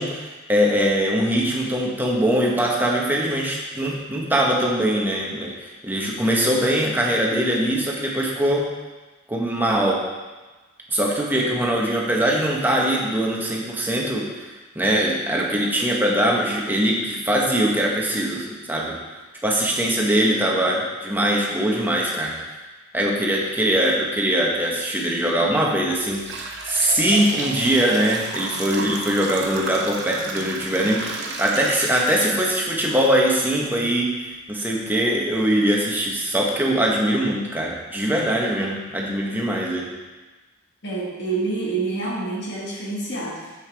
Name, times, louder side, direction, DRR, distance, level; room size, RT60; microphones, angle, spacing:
voice 1, 0.0-8.7 9.3-10.0 10.9-14.5 14.7-19.0 19.4-22.3 22.9-39.9, right 1 dB, 10° right, -3 dB, 1.0 m, -22 dB
sound 1, 25.1-25.3 25.8-32.9 33.3-33.4 34.3-34.4 34.9-35.0 35.4-35.7, right 3 dB, 60° right, 0.8 m, -33 dB
voice 2, 40.8-43.6, right 3 dB, 60° left, -4 dB, 1.6 m, -27 dB
6.8 x 6.6 x 3.4 m, 1.2 s
head